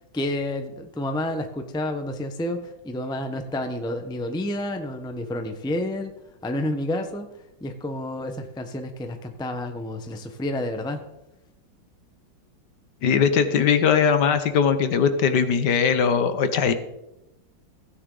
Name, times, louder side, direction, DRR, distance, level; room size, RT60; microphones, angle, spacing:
voice 1, 0.1-6.1 6.4-7.3 7.6-11.0, left 1 dB, 5° left, 6 dB, 0.6 m, -29 dB
voice 2, 13.0-16.7, left 6 dB, 65° left, 10 dB, 1.5 m, -20 dB
16.0 x 9.7 x 3.9 m, 0.90 s
omnidirectional pair, 2.0 m